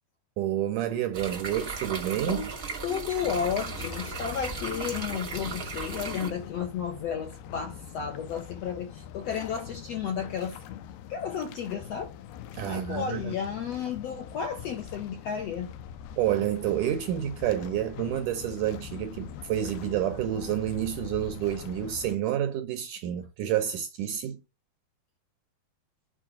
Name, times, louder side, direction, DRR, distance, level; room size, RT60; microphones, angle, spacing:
voice 1, 0.4-2.5 12.5-13.3 16.2-24.4, right 11 dB, 75° right, 1.9 m, -29 dB
sound 1, 1.1-6.3, right 4 dB, 50° right, 0.9 m, -37 dB
voice 2, 2.8-10.6 11.1-12.1 12.6-15.7, left 7 dB, 65° left, 1.7 m, -32 dB
sound 2, 3.2-22.2, left 9 dB, 85° left, 2.8 m, -43 dB
8.8 x 4.9 x 4.9 m
omnidirectional pair, 4.4 m